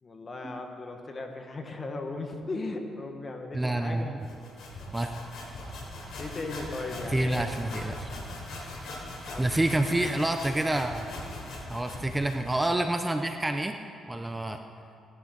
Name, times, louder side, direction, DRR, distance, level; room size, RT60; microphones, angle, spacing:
voice 1, 0.0-4.4 6.2-7.5 9.2-9.5, left 2 dB, 35° left, 4 dB, 1.5 m, -37 dB
voice 2, 3.5-4.3 4.9-5.1 7.1-8.1 9.4-11.3 11.7-13.7 14.1-14.6, right 1 dB, 15° right, 6 dB, 0.6 m, -28 dB
sound 1, 4.2-12.8, left 1 dB, 75° left, 3.6 m, -40 dB
17.5 x 11.0 x 3.9 m, 2.6 s
cardioid pair, 90°, 0 cm